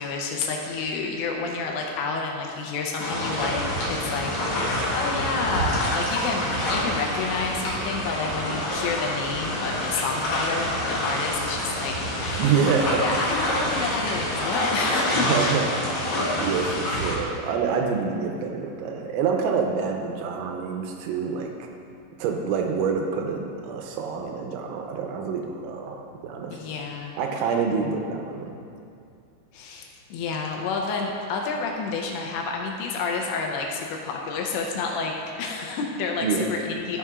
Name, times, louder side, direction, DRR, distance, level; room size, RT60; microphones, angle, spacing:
voice 1, 0.0-4.3 4.6-12.6 13.0-15.6 26.5-27.2 29.5-37.0, left 4 dB, 80° left, 1 dB, 2.8 m, -29 dB
sound 1, 3.0-17.2, left 1 dB, 60° left, 2.0 m, -27 dB
voice 2, 12.4-13.0 15.1-15.6 16.4-21.5 22.2-26.6 27.2-28.6 36.2-36.4, right 6 dB, 85° right, 2 dB, 3.1 m, -26 dB
13.0 x 6.6 x 2.4 m, 2.5 s
omnidirectional pair, 5.4 m